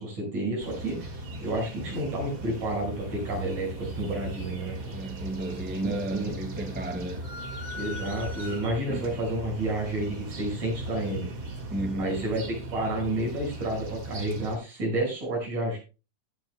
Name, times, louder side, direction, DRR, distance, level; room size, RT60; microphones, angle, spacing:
voice 1, 0.0-4.9 5.7-6.4 7.8-11.3 12.0-12.4 12.7-15.8, right 1 dB, 70° right, 7.0 m, -30 dB
sound 1, 0.6-14.6, right 1 dB, 35° right, 2.1 m, -38 dB
voice 2, 4.9-7.3 8.9-9.1 11.7-12.3, right 2 dB, 5° right, 0.8 m, -33 dB
sound 2, 7.2-9.1, left 3 dB, 60° left, 6.9 m, -41 dB
18.5 x 9.0 x 2.2 m
omnidirectional pair, 3.5 m